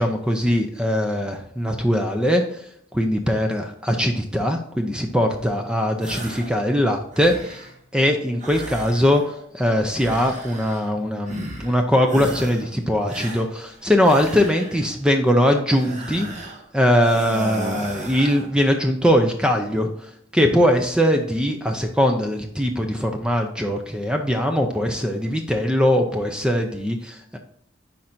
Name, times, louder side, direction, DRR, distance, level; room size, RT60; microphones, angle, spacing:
voice 1, 0.0-2.7 2.9-7.7 7.9-16.3 16.7-27.4, equal, 5° right, 4 dB, 0.5 m, -21 dB
sound 1, 6.0-6.6 6.9-7.8 8.4-9.4 9.9-10.9 11.3-11.8 12.1-12.7 13.1-14.9 15.7-16.6 17.0-18.5, right 2 dB, 40° right, 1.3 m, -35 dB
10.0 x 4.3 x 2.6 m, 0.72 s
head